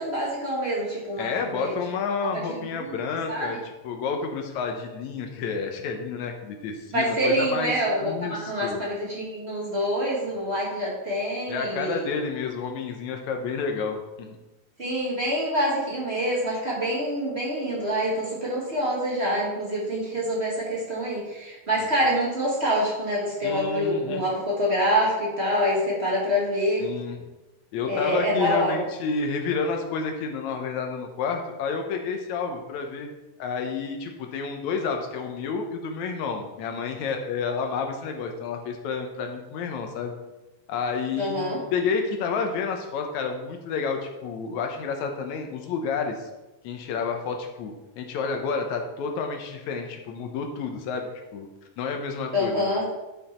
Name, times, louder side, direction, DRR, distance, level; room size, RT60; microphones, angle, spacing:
voice 1, 0.0-1.8 2.3-2.9 3.3-3.6 6.9-12.0 14.8-26.9 27.9-28.7 41.2-41.6 52.3-52.8, equal, 25° right, -5 dB, 1.4 m, -26 dB
voice 2, 1.2-3.6 3.8-7.7 8.0-8.8 11.5-14.4 21.8-21.9 23.4-24.2 26.8-27.2 27.7-33.1 33.4-40.1 40.7-46.3 46.6-51.5 51.8-52.7, left 5 dB, 70° left, 4 dB, 1.8 m, -30 dB
10.0 x 5.4 x 4.3 m, 1.0 s
omnidirectional pair, 4.1 m